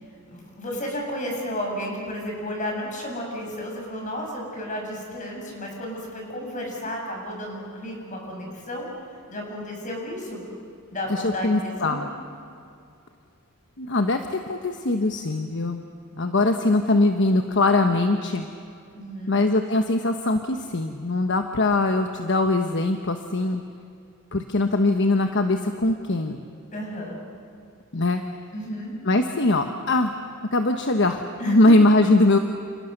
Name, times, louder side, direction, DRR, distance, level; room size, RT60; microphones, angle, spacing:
voice 1, 0.3-8.9 9.3-10.5 10.9-12.0 16.4-16.7 18.9-19.4 26.7-27.2 28.5-28.9 31.4-31.7, equal, 35° left, 0 dB, 6.8 m, -32 dB
voice 2, 11.1-12.1 13.8-15.8 16.1-18.5 19.3-23.6 24.3-26.4 27.9-28.2 29.0-30.1 30.5-32.4, left 2 dB, 55° left, 6 dB, 1.2 m, -21 dB
29.0 x 28.5 x 6.7 m, 2.4 s
head